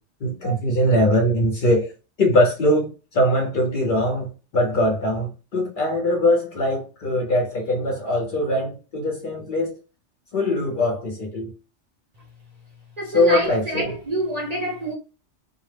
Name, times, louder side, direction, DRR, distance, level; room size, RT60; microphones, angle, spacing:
voice 1, 0.2-1.9 2.2-9.8 10.3-11.5 13.1-13.9, left 1 dB, 55° left, 0.6 m, -21 dB
voice 2, 13.0-14.9, right 1 dB, 45° right, 0.6 m, -27 dB
2.1 x 2.0 x 3.1 m
omnidirectional pair, 1.2 m